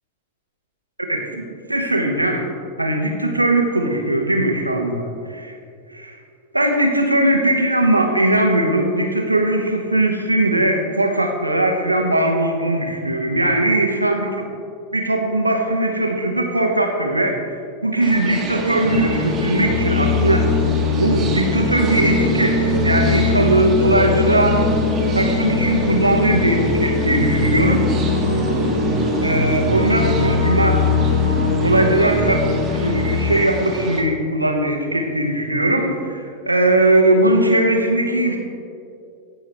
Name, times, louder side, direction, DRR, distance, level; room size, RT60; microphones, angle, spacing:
voice 1, 1.1-2.5 2.8-5.6 5.9-6.2 6.5-14.4 14.9-17.4 17.8-20.5 21.0-24.6 25.1-27.8 29.2-30.8 31.6-38.4, right 1 dB, 85° right, 3 dB, 1.1 m, -19 dB
sound 1, 18.0-34.0, right 2 dB, 25° right, 1.6 m, -29 dB
sound 2, 18.8-33.2, left 3 dB, 75° left, 2.6 m, -20 dB
16.5 x 6.2 x 3.4 m, 2.4 s
figure-of-eight pair, 90°, 0 cm